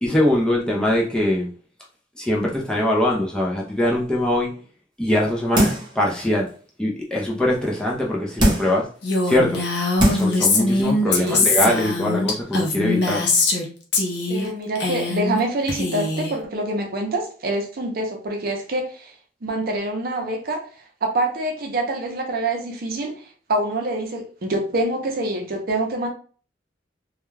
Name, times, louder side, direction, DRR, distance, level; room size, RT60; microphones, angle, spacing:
voice 1, 0.0-1.5 2.2-4.6 5.0-6.5 6.8-8.9 9.2-9.6 10.1-13.3, left 1 dB, 5° left, 0.4 m, -22 dB
sound 1, 5.6-6.0 6.5-6.6 8.4-8.8 9.5-9.6 10.0-10.4 10.8-10.9, right 1 dB, 25° right, 0.8 m, -20 dB
Female speech woman speaking, 9.0-13.6 13.9-14.5 14.7-15.4 15.7-16.3, left 3 dB, 65° left, 0.7 m, -22 dB
voice 2, 11.0-11.5 14.3-19.1 19.4-20.7 21.0-23.2 23.5-26.1, right 2 dB, 55° right, 0.6 m, -26 dB
2.3 x 2.2 x 3.1 m
head